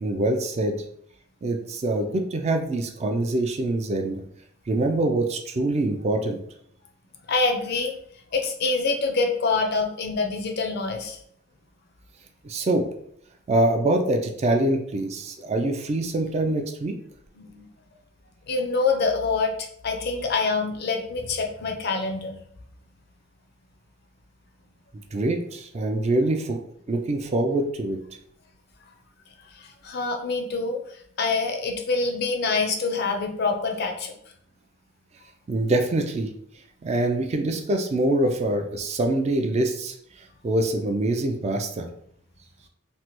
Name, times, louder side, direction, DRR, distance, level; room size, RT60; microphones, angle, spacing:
voice 1, 0.0-0.7 1.4-4.2 4.7-6.4 12.4-12.8 13.5-16.9 25.1-26.6 26.9-28.0 35.5-36.3 36.8-39.9 40.4-41.9, right 2 dB, 30° right, 4 dB, 0.3 m, -24 dB
voice 2, 7.3-7.9 8.3-11.2 17.4-17.7 18.5-19.5 19.8-22.4 29.5-34.1, left 4 dB, 50° left, 3 dB, 0.5 m, -26 dB
3.1 x 2.1 x 2.9 m, 0.67 s
head